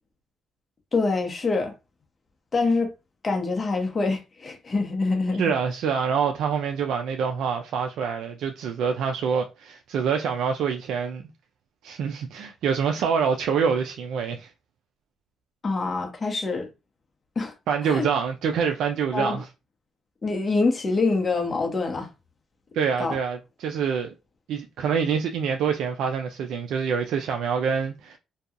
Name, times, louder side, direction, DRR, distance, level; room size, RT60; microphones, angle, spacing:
voice 1, 0.9-1.7 2.5-2.9 3.2-5.5 15.6-16.7 17.4-17.5 17.8-18.1 19.1-19.4 20.2-22.1 23.0-23.1, left 3 dB, 35° left, 0.8 m, -25 dB
voice 2, 5.4-11.3 11.8-14.5 17.7-19.5 22.7-24.1 24.5-28.2, right 6 dB, 80° right, 0.3 m, -26 dB
2.7 x 2.2 x 2.4 m
cardioid pair, 90°, 0 cm